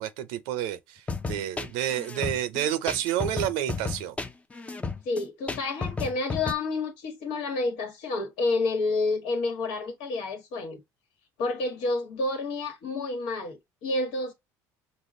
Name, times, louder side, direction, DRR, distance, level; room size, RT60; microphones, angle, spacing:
voice 1, 0.0-4.2, right 11 dB, 80° right, 0.5 m, -30 dB
sound 1, 1.1-6.5, left 4 dB, 15° left, 0.5 m, -33 dB
voice 2, 5.0-10.8 11.4-14.3, left 3 dB, 75° left, 1.3 m, -29 dB
5.3 x 2.2 x 3.6 m
supercardioid pair, 90°, 8 cm